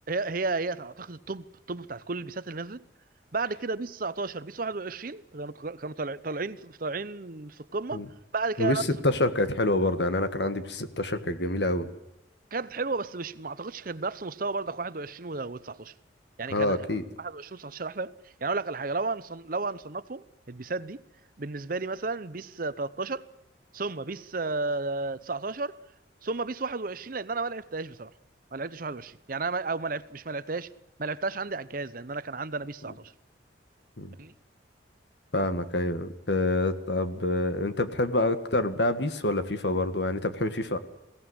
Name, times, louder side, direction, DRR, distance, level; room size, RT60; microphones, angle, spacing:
voice 1, 0.1-2.8 3.3-8.0 8.3-8.8 12.5-15.9 16.4-18.1 18.4-21.0 21.4-23.3 23.7-25.8 26.2-28.1 28.5-30.7 31.0-33.1 34.2-34.3, right 3 dB, 45° right, 0.8 m, -33 dB
voice 2, 8.6-11.9 16.5-17.0 34.0-34.1 35.3-40.8, left 2 dB, 65° left, 1.8 m, -27 dB
22.5 x 17.0 x 9.6 m
head